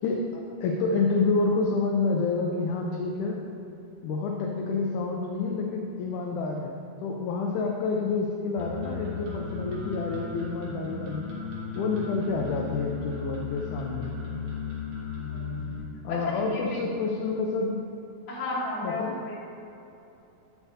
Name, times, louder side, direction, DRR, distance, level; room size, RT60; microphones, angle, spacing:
voice 1, 0.0-3.4 4.0-11.3 11.8-14.2 16.0-17.8 18.8-19.1, left 4 dB, 80° left, 0 dB, 1.8 m, -28 dB
sound 1, 8.6-15.8, left 4 dB, 85° right, 3.1 m, -36 dB
voice 2, 15.3-15.6 16.1-16.8 18.3-19.3, left 2 dB, 45° left, -7 dB, 2.1 m, -33 dB
8.3 x 8.1 x 2.7 m, 2.9 s
omnidirectional pair, 3.9 m